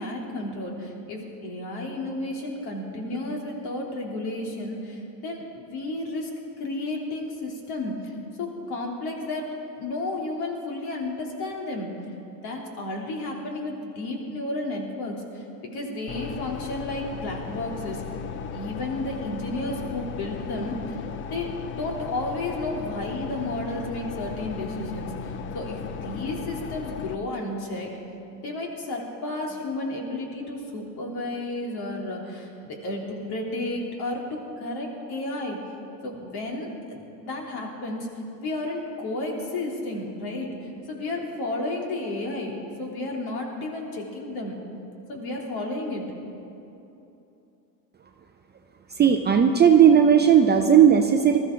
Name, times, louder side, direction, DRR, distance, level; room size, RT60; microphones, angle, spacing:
voice 1, 0.0-6.3 6.6-11.9 12.4-15.5 15.7-18.0 18.5-21.0 21.3-27.9 28.4-35.6 36.0-38.1 38.4-44.6 45.1-46.1, left 2 dB, 50° left, 0 dB, 3.2 m, -32 dB
sound 1, 16.1-27.2, left 7 dB, 25° left, 0.4 m, -36 dB
voice 2, 49.0-51.4, right 8 dB, 20° right, 5 dB, 0.6 m, -16 dB
20.0 x 13.5 x 3.8 m, 2.9 s
hypercardioid pair, 90°, 49 cm